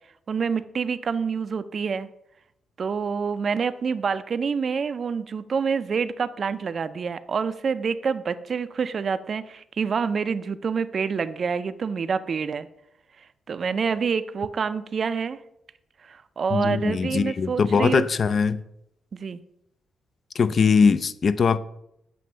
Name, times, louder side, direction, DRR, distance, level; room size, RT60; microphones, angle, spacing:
voice 1, 0.3-2.1 2.8-12.7 13.5-15.4 16.0-18.1 19.1-19.4, right 6 dB, 55° right, 13 dB, 0.3 m, -27 dB
voice 2, 16.5-18.6 20.4-21.6, left 5 dB, 55° left, 14 dB, 0.3 m, -21 dB
7.6 x 2.5 x 5.4 m, 0.79 s
cardioid pair, 65°, 0 cm